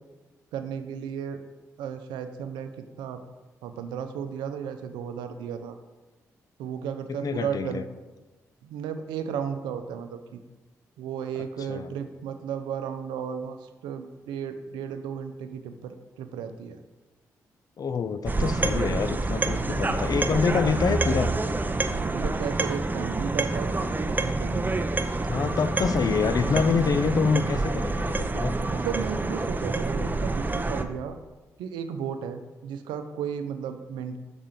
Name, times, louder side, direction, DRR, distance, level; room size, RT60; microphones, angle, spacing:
voice 1, 0.5-1.4 1.8-2.7 3.0-3.2 3.6-5.8 6.6-7.8 8.6-10.4 11.0-16.8 22.1-24.8 28.7-31.2 31.6-34.2, right 7 dB, 85° right, 8 dB, 0.5 m, -34 dB
voice 2, 7.2-7.8 11.7-11.9 17.8-21.3 25.2-28.6, left 5 dB, 55° left, 12 dB, 0.5 m, -26 dB
sound 1, 18.3-30.8, right 2 dB, 25° right, 0.6 m, -27 dB
sound 2, 20.1-21.8 22.2-24.4 24.9-25.5 25.9-26.0 26.3-26.4 27.7-27.8, equal, 85° left, 1.7 m, -52 dB
5.8 x 3.6 x 5.7 m, 1.2 s
hypercardioid pair, 40°, 8 cm